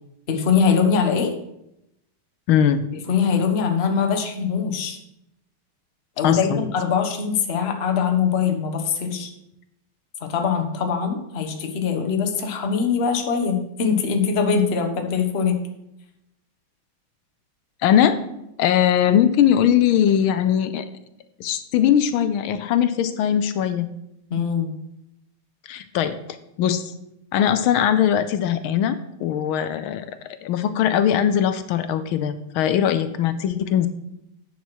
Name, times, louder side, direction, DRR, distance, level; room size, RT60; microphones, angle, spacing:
voice 1, 0.3-1.3 3.1-5.0 6.2-9.3 10.2-15.6 24.3-24.7, left 6 dB, 40° left, 5 dB, 1.1 m, -22 dB
voice 2, 2.5-2.9 6.2-6.6 17.8-18.2 18.6-20.9 21.4-23.9 25.7-26.2 26.6-26.9 27.3-30.1 30.4-33.9, left 9 dB, 80° left, 11 dB, 1.4 m, -20 dB
9.4 x 5.9 x 6.2 m, 0.83 s
omnidirectional pair, 2.3 m